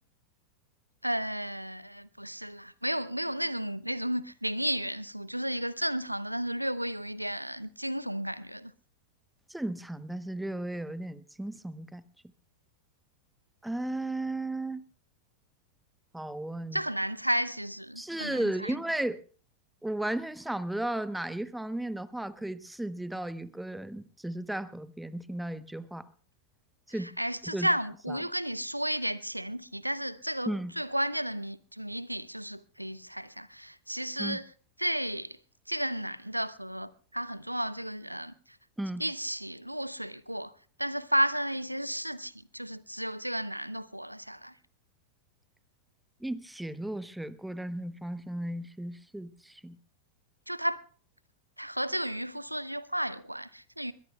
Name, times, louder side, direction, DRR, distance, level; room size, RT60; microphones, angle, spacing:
voice 1, 1.0-8.7 16.7-18.8 27.0-34.5 34.8-35.4 35.7-38.3 39.0-40.5 40.8-44.5 50.5-50.8 51.6-53.9, equal, 90° right, 0.7 m, -33 dB
voice 2, 9.5-12.0 13.6-14.8 16.1-16.8 18.0-19.2 19.8-26.0 26.9-27.1 27.4-27.7 28.1-28.2 30.5-30.7 34.2-34.4 38.8-39.0 46.2-49.8, right 1 dB, 5° right, 0.9 m, -35 dB
22.0 x 21.0 x 2.3 m
figure-of-eight pair, 90°, 0 cm